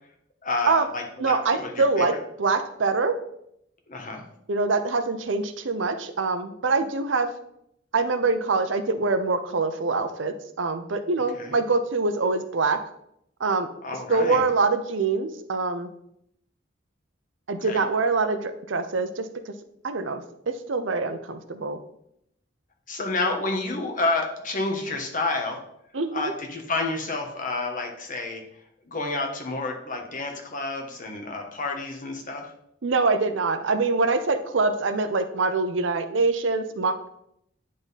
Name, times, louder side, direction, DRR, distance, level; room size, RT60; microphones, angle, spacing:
voice 1, 0.4-2.2 3.9-4.2 11.3-11.6 13.8-14.5 17.6-17.8 22.9-25.6 26.1-28.4 28.9-32.5, left 3 dB, 45° left, 3 dB, 1.2 m, -29 dB
voice 2, 1.2-2.1 2.4-3.1 4.5-7.3 7.9-12.8 13.4-13.7 14.1-15.9 17.5-19.5 19.8-21.8 25.9-26.3 32.8-37.1, right 3 dB, 70° right, 9 dB, 0.7 m, -24 dB
9.9 x 3.7 x 4.1 m, 0.75 s
head